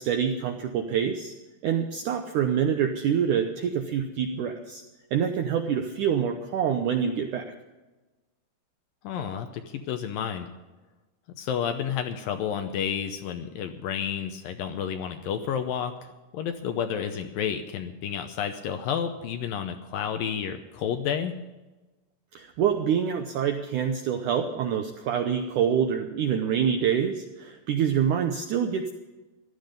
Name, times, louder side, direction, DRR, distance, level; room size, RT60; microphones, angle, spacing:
voice 1, 0.0-1.3 1.6-4.8 5.1-7.4 22.4-28.9, right 8 dB, 80° right, 5 dB, 1.8 m, -26 dB
voice 2, 9.0-10.5 11.4-21.3, left 8 dB, 75° left, 7 dB, 2.2 m, -31 dB
15.5 x 12.0 x 5.2 m, 1.2 s
omnidirectional pair, 4.7 m